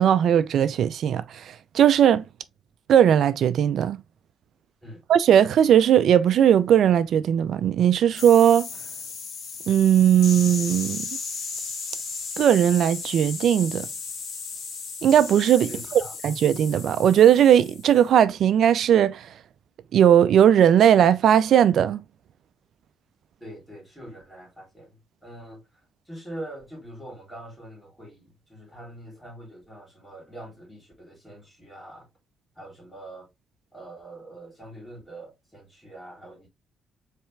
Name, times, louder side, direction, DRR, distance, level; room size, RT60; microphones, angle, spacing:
voice 1, 0.0-2.2 2.9-4.0 5.1-8.7 9.7-11.1 12.4-13.9 15.0-19.3 19.9-22.0, right 9 dB, 70° right, 0.4 m, -18 dB
sound 1, 8.2-18.0, left 4 dB, 60° left, 1.8 m, -35 dB
voice 2, 15.7-16.1 23.4-32.1 32.5-33.3 33.7-36.5, right 1 dB, ahead, 3.4 m, -43 dB
4.3 x 3.3 x 3.2 m
cardioid pair, 90°, 0 cm